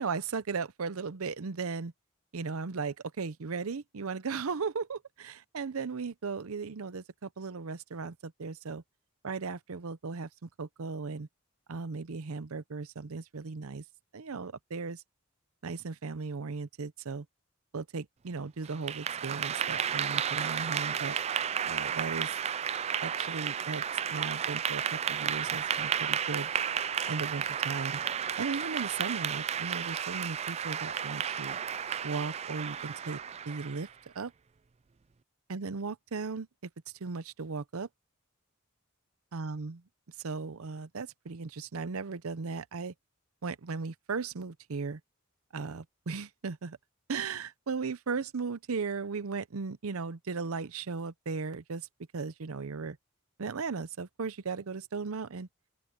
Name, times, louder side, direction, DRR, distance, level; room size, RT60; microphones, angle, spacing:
voice 1, 0.0-1.9 2.3-8.8 9.2-11.3 11.7-13.8 14.1-15.0 15.6-17.3 17.7-21.2 21.6-22.3 23.0-23.8 24.1-26.5 27.1-28.0 28.4-31.6 32.0-33.2 33.5-33.9 34.1-34.3 35.5-36.5 37.0-37.9 39.3-39.8 40.2-42.9 43.4-45.0 45.5-46.8 47.1-51.9 52.1-53.0 53.4-55.5, right 4 dB, 80° right, 0.7 m, -36 dB
Clapping / Applause, 18.7-33.9, right 8 dB, 30° right, 0.3 m, -33 dB
open air
head